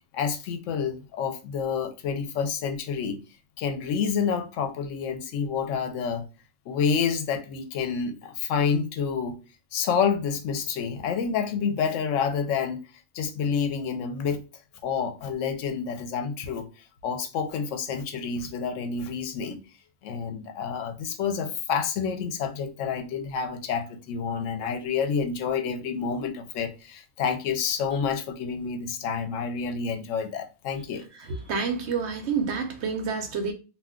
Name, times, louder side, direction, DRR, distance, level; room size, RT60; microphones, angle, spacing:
voice 1, 0.1-3.2 3.6-6.2 6.7-9.4 9.7-12.8 13.1-14.4 14.8-16.7 17.0-19.6 20.0-31.0, left 6 dB, 85° left, 0.9 m, -28 dB
voice 2, 31.2-33.5, right 5 dB, 70° right, 0.9 m, -28 dB
2.4 x 2.2 x 3.6 m
omnidirectional pair, 1.3 m